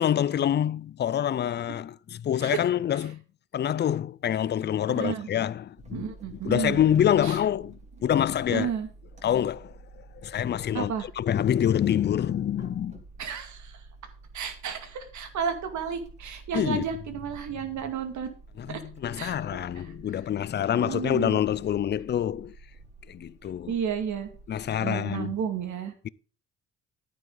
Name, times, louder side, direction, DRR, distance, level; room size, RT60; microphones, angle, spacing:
voice 1, 0.0-3.2 3.5-8.7 9.2-13.0 16.5-16.9 18.6-22.6 23.1-23.7 24.5-25.4, left 10 dB, 35° left, 0.4 m, -26 dB
voice 2, 5.0-5.3 5.9-6.8 7.2-7.4 8.5-8.9 10.7-11.1 13.2-13.8 14.3-18.3 18.7-18.8 19.2-19.3 19.8-19.9 20.7-21.4 23.7-24.3 24.8-25.9, right 7 dB, 70° right, 2.2 m, -32 dB
sound 1, 5.8-24.8, right 3 dB, 25° right, 2.6 m, -49 dB
11.0 x 9.1 x 3.9 m
cardioid pair, 90°, 30 cm